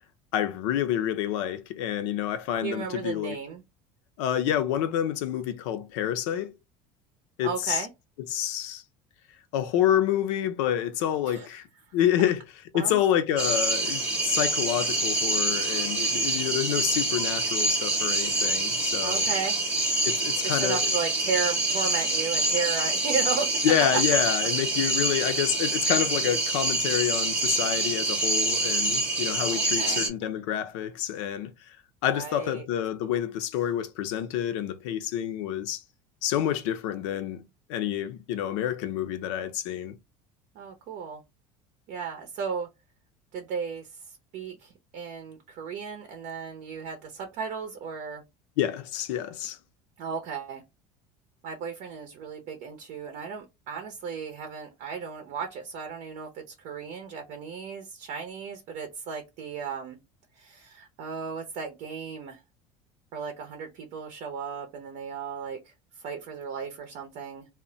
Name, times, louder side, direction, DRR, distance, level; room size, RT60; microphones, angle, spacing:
voice 1, 0.3-3.4 4.2-6.5 7.4-7.9 8.3-8.8 9.5-11.7 11.9-12.4 12.7-19.2 20.0-20.8 23.6-31.8 32.0-35.8 36.2-37.4 37.7-40.0 48.6-49.6, left 10 dB, 85° left, 0.5 m, -28 dB
voice 2, 2.6-3.6 7.4-7.9 11.2-11.5 12.7-13.0 19.0-19.6 20.4-23.5 29.5-30.3 32.1-32.7 40.5-41.2 41.9-42.7 43.3-48.2 50.0-50.6 51.4-60.0 60.4-62.4 63.1-67.5, right 5 dB, 65° right, 0.6 m, -35 dB
sound 1, 13.4-30.1, right 2 dB, 10° right, 0.8 m, -26 dB
2.1 x 2.1 x 3.7 m
cardioid pair, 125°, 15 cm